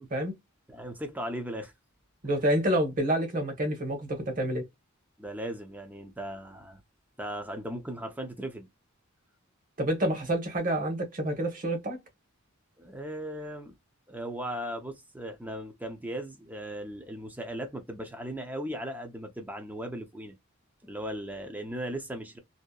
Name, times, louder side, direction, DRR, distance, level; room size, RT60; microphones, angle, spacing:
voice 1, 0.7-1.7 5.2-6.8 7.2-8.7 12.8-13.8 14.1-20.4 20.8-22.4, equal, 10° right, 0.5 m, -37 dB
voice 2, 2.2-4.6 9.8-12.0, right 1 dB, 40° right, 1.0 m, -28 dB
2.7 x 2.1 x 2.2 m
head